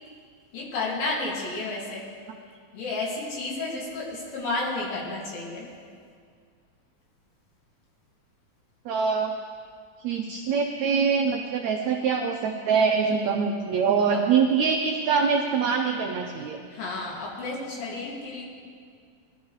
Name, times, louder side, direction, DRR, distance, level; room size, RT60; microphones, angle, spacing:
voice 1, 0.5-2.1 2.7-5.7 14.1-14.2 16.7-18.4, left 2 dB, 80° left, -3 dB, 4.0 m, -31 dB
voice 2, 8.9-9.3 10.0-16.6, right 6 dB, 85° right, 4 dB, 1.5 m, -24 dB
19.0 x 12.0 x 3.2 m, 2.1 s
omnidirectional pair, 4.0 m